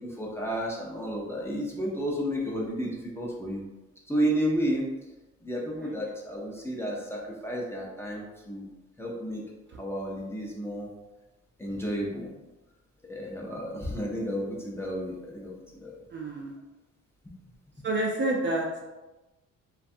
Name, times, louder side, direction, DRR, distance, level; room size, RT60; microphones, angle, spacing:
voice 1, 0.0-3.6 4.1-4.9 5.4-8.7 9.0-9.4 9.8-10.9 11.6-12.3 13.1-16.0 17.2-17.4, equal, 10° left, -3 dB, 0.6 m, -32 dB
voice 2, 16.1-16.6 17.8-18.9, right 2 dB, 40° right, -1 dB, 0.4 m, -29 dB
2.5 x 2.3 x 2.6 m, 1.1 s
cardioid pair, 90°, 30 cm